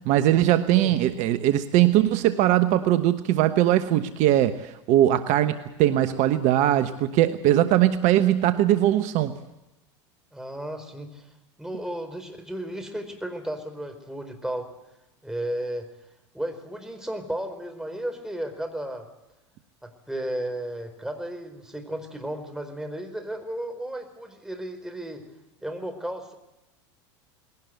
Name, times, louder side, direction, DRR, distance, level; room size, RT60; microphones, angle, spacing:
voice 1, 0.0-9.4, right 13 dB, 55° right, 11 dB, 1.2 m, -21 dB
voice 2, 10.3-11.3 11.6-14.7 15.2-15.9 16.3-19.1 19.8-25.2 25.6-26.3, right 1 dB, 5° right, 5 dB, 4.6 m, -34 dB
20.5 x 18.0 x 8.0 m, 0.93 s
hypercardioid pair, 90°, 15 cm